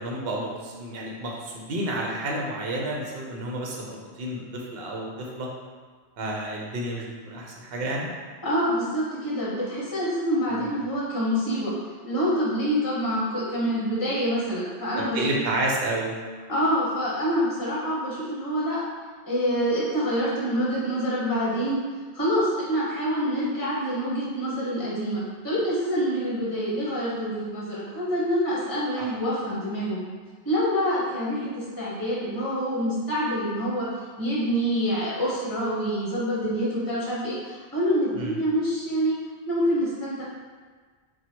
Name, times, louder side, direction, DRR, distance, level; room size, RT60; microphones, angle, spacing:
voice 1, 0.0-5.5 6.2-8.1 14.9-16.1 29.0-29.1 38.2-38.4, right 1 dB, 65° right, -1 dB, 0.9 m, -30 dB
voice 2, 8.4-11.7 12.0-15.5 16.5-18.8 19.3-21.8 22.1-30.0 30.4-33.9 34.2-39.1 39.5-40.2, equal, 20° left, -7 dB, 0.9 m, -26 dB
4.6 x 2.3 x 4.3 m, 1.5 s
omnidirectional pair, 1.1 m